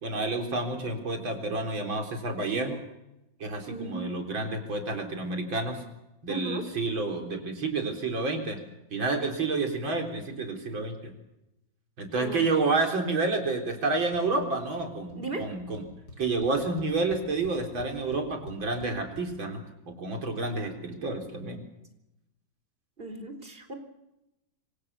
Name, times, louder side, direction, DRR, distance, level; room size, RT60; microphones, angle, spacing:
voice 1, 0.0-2.8 3.4-5.8 6.2-8.6 8.9-11.1 12.0-15.9 16.2-21.6, right 3 dB, 90° right, 4 dB, 4.6 m, -29 dB
voice 2, 3.7-4.2 6.3-6.6 12.1-12.4 15.1-15.4 21.5-21.6 23.0-23.7, right 2 dB, 30° right, 6 dB, 4.1 m, -36 dB
sound 1, 14.1-14.5 14.8-15.2 15.4-15.5 15.7-19.3, left 1 dB, 75° left, 6.8 m, -46 dB
26.5 x 25.0 x 6.8 m, 0.94 s
omnidirectional pair, 2.1 m